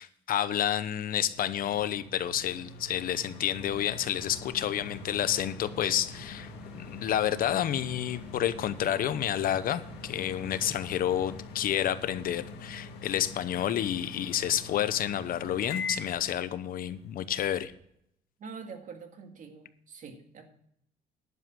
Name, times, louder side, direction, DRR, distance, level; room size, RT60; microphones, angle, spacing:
voice 1, 0.0-17.7, left 11 dB, 60° left, 13 dB, 0.8 m, -30 dB
sound 1, 1.3-17.7, left 3 dB, 85° left, 1.8 m, -44 dB
sound 2, 3.5-11.4, right 1 dB, 10° right, 0.9 m, -50 dB
voice 2, 18.4-20.5, right 5 dB, 50° right, 5 dB, 2.0 m, -45 dB
11.0 x 7.4 x 6.3 m, 0.71 s
cardioid pair, 110°, 17 cm